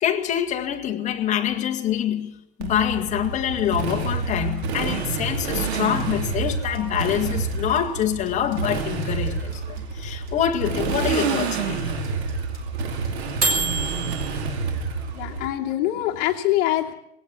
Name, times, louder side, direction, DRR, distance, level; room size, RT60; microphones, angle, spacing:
voice 1, 0.0-11.9, left 10 dB, 20° left, 1.8 m, -25 dB
Motorcycle, 2.6-15.5, right 5 dB, 70° right, 4.7 m, -28 dB
sound 1, 6.0-14.3, right 3 dB, 25° right, 4.7 m, -27 dB
voice 2, 15.1-16.9, left 14 dB, 40° left, 2.7 m, -24 dB
20.0 x 17.5 x 8.4 m
supercardioid pair, 170°, 34 cm